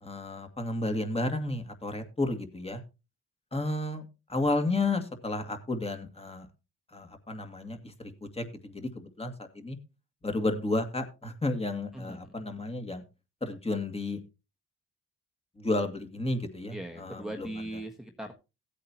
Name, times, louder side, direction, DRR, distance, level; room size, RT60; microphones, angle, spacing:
voice 1, 0.0-2.8 3.5-4.0 4.3-6.5 6.9-9.8 10.2-13.0 13.4-14.2 15.6-17.5, left 2 dB, 20° left, 6 dB, 2.1 m, -32 dB
voice 2, 11.9-12.3 16.7-18.3, right 1 dB, ahead, 2 dB, 1.4 m, -39 dB
16.0 x 8.5 x 2.9 m, 0.28 s
cardioid pair, 90°, 30 cm